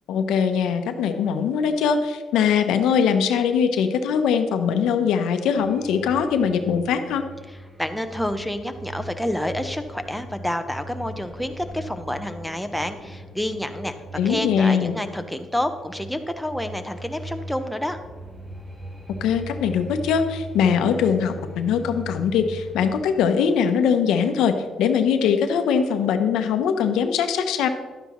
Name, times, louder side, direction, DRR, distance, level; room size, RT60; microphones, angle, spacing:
voice 1, 0.1-7.2 14.2-15.0 19.2-27.7, left 7 dB, 85° left, 8 dB, 0.7 m, -21 dB
sound 1, 5.6-23.1, equal, 20° right, 2.9 m, -39 dB
voice 2, 7.8-13.9 14.2-18.0, left 1 dB, ahead, 6 dB, 0.8 m, -28 dB
11.5 x 9.3 x 3.1 m, 1.4 s
cardioid pair, 90°, 0 cm